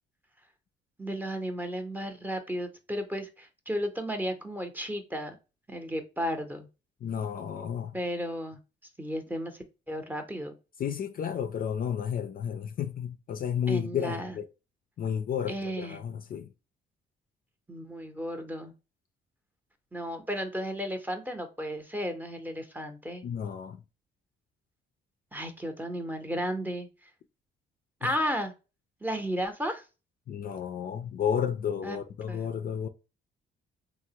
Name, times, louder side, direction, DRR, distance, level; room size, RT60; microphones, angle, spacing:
voice 1, 1.0-5.4 5.7-6.7 7.9-8.6 9.0-10.6 13.7-14.4 15.5-16.0 17.7-18.7 19.9-23.2 25.3-26.9 28.0-28.5 29.0-29.8 31.8-32.0 32.3-32.5, equal, 10° right, 0.7 m, -34 dB
voice 2, 7.0-8.0 10.8-14.5 15.0-16.5 23.2-23.8 28.0-28.1 30.3-32.9, left 8 dB, 45° left, 0.4 m, -32 dB
3.3 x 2.0 x 2.8 m
cardioid pair, 90°, 20 cm